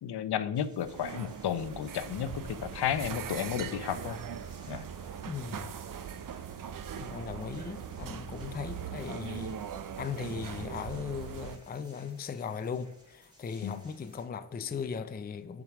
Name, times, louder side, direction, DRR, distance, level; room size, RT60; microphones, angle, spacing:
voice 1, 0.0-4.2 4.7-4.8 13.6-13.8, left 9 dB, 65° left, 0.7 m, -33 dB
sound 1, 0.5-14.3, equal, 10° right, 2.3 m, -60 dB
sound 2, 0.8-11.6, right 8 dB, 50° right, 0.6 m, -40 dB
voice 2, 5.3-5.7 7.0-9.6 10.0-15.6, left 6 dB, 25° left, 0.4 m, -38 dB
7.1 x 5.1 x 5.9 m
wide cardioid pair, 130°, 42 cm